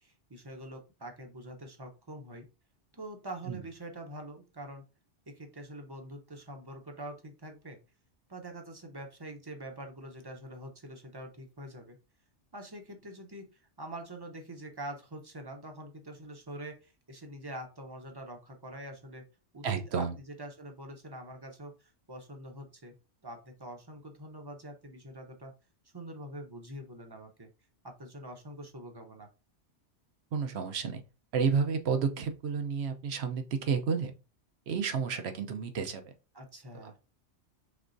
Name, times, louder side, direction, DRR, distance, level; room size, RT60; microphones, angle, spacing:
voice 1, 0.0-2.5 2.9-4.8 5.3-7.8 8.3-12.0 12.5-19.2 19.5-22.9 23.2-25.5 25.9-27.5 27.8-29.3 36.3-37.0, right 1 dB, 25° right, 4 dB, 0.7 m, -45 dB
voice 2, 19.6-20.1 30.3-31.0 31.3-34.1 34.7-36.0 36.8-36.9, right 6 dB, 65° right, 7 dB, 1.0 m, -31 dB
5.2 x 3.5 x 2.6 m, 0.30 s
omnidirectional pair, 1.2 m